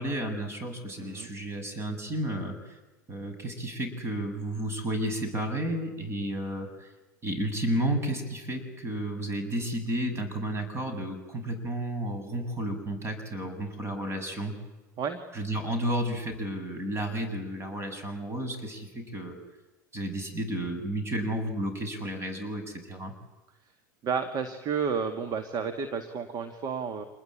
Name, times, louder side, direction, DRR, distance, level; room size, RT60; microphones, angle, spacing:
voice 1, 0.0-2.8 3.1-6.9 7.2-14.5 15.3-19.4 19.9-23.1, right 1 dB, 25° right, 7 dB, 7.1 m, -32 dB
voice 2, 24.0-27.0, right 6 dB, 40° right, 9 dB, 2.1 m, -31 dB
27.0 x 20.5 x 8.8 m, 1.1 s
hypercardioid pair, 90°, 10 cm